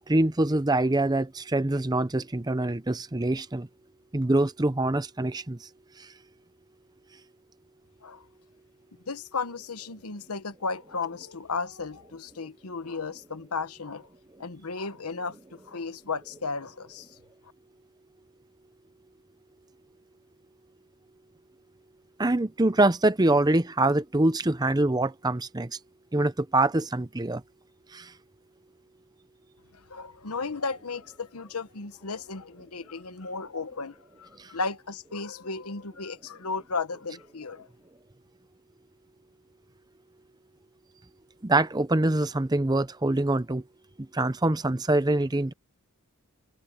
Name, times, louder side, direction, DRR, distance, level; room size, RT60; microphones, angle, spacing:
voice 1, 0.1-3.7 4.1-5.7 6.0-6.1 22.2-25.8 26.1-27.4 27.9-28.1 34.4-34.5 41.4-43.6 44.1-45.5, right 2 dB, 20° right, 0.7 m, -24 dB
voice 2, 9.1-14.1 14.4-17.2 29.7-37.7, left 4 dB, 85° left, 1.2 m, -35 dB
head